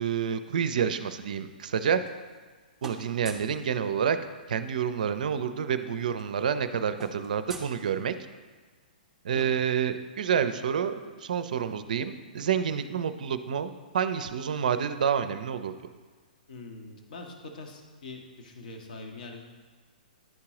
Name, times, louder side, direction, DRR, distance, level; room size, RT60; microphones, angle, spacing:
voice 1, 0.0-2.0 2.8-4.2 4.5-8.2 9.2-10.9 11.2-15.7, right 7 dB, 60° right, 11 dB, 0.4 m, -28 dB
sound 1, 1.7-2.5 2.8-3.6 5.0-5.1 5.3-5.5 5.8-8.4, right 4 dB, 5° right, 0.7 m, -46 dB
voice 2, 16.5-19.5, left 3 dB, 60° left, 2 dB, 0.9 m, -43 dB
10.5 x 3.7 x 2.9 m, 1.4 s
figure-of-eight pair, 120°, 5 cm